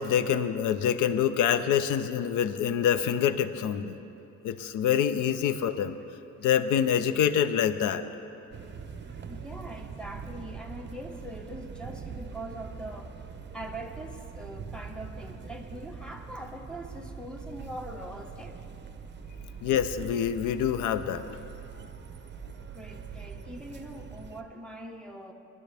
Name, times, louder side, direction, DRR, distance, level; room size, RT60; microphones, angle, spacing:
voice 1, 0.0-4.0 4.4-6.0 6.4-8.0 19.6-21.4, left 9 dB, 85° left, 12 dB, 0.7 m, -26 dB
sound 1, 8.5-24.4, right 6 dB, 35° right, 0.8 m, -43 dB
voice 2, 9.0-13.2 13.5-18.6 22.3-25.3, right 1 dB, 5° left, 2 dB, 1.3 m, -42 dB
22.0 x 11.0 x 3.4 m, 2.9 s
cardioid pair, 90°, 30 cm